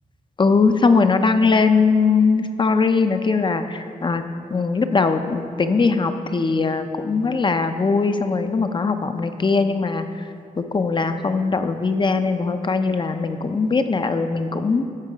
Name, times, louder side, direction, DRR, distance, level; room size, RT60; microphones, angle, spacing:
voice 1, 0.4-4.2 4.5-10.3 10.6-14.8, left 4 dB, 30° left, 8 dB, 0.6 m, -20 dB
13.0 x 4.9 x 5.0 m, 2.4 s
wide cardioid pair, 100°, 15 cm